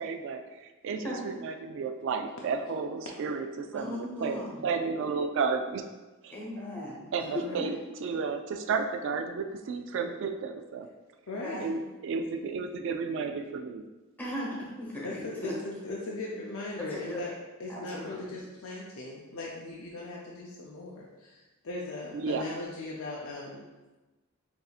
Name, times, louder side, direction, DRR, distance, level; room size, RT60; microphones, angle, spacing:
voice 1, 0.0-5.9 6.2-6.4 7.1-10.9 11.6-13.9 22.1-22.5, right 5 dB, 60° right, 6 dB, 0.3 m, -32 dB
voice 2, 3.7-4.7 6.3-7.6 11.3-11.6 14.2-15.5 16.9-17.2 17.7-18.4, left 1 dB, 10° left, -5 dB, 1.1 m, -38 dB
voice 3, 7.2-7.7 11.3-11.7 15.0-17.3 17.6-23.7, left 2 dB, 75° left, -3 dB, 0.5 m, -38 dB
6.7 x 2.7 x 2.4 m, 1.1 s
head